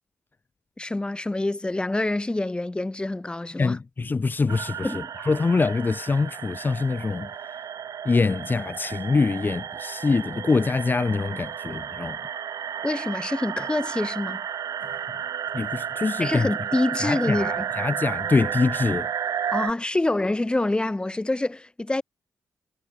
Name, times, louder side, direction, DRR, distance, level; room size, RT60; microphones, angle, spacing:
voice 1, 0.8-3.8 4.8-5.1 12.8-14.4 16.2-17.7 19.5-22.0, left 2 dB, 15° left, 2.0 m, -26 dB
voice 2, 3.6-7.6 8.0-12.3 14.8-15.0 15.5-16.5 17.0-19.1, left 4 dB, 30° left, 1.4 m, -25 dB
sound 1, 4.5-19.7, right 8 dB, 70° right, 3.6 m, -32 dB
cardioid pair, 90°, 6 cm